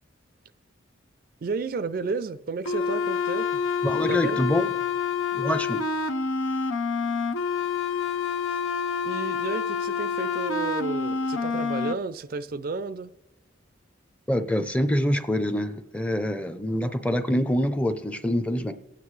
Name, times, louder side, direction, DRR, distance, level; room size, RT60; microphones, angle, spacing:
voice 1, 1.4-3.6 4.1-4.4 9.0-13.1, right 4 dB, 50° right, 13 dB, 0.4 m, -32 dB
sound 1, 2.7-11.9, left 5 dB, 90° left, 0.7 m, -27 dB
voice 2, 3.8-4.7 5.3-5.8 14.3-18.7, equal, 5° left, 10 dB, 0.5 m, -25 dB
27.0 x 9.1 x 3.2 m, 1.1 s
head